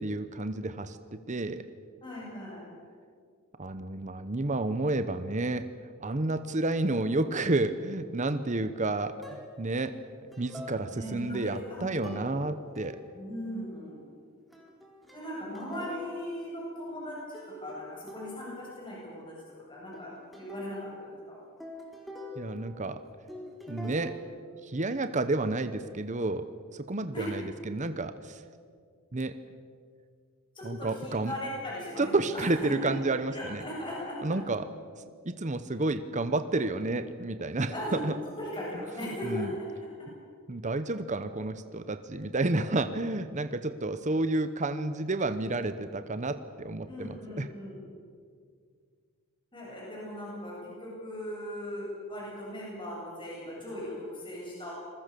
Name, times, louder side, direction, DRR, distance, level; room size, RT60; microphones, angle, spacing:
voice 1, 0.0-1.7 3.6-5.7 6.0-10.0 10.4-13.0 22.4-23.0 23.7-24.1 24.6-26.5 26.7-28.4 29.1-29.4 30.6-31.3 32.0-33.6 34.2-34.6 35.2-38.1 39.2-39.5 40.5-47.5, right 2 dB, 35° right, 11 dB, 0.9 m, -30 dB
voice 2, 2.0-2.6 10.9-12.2 13.1-14.0 15.1-19.3 19.7-21.4 27.1-27.3 30.5-32.9 33.3-34.4 37.7-38.0 38.4-39.7 46.9-47.8 49.5-54.7, equal, 25° left, -5 dB, 7.8 m, -38 dB
sound 1, 9.2-9.7 10.3-11.3 12.0-12.4 12.8-13.3 14.5-17.1 17.3-18.7 19.9-23.0 23.3-24.2, left 1 dB, ahead, 4.1 m, -45 dB
26.5 x 21.5 x 6.9 m, 2.1 s
head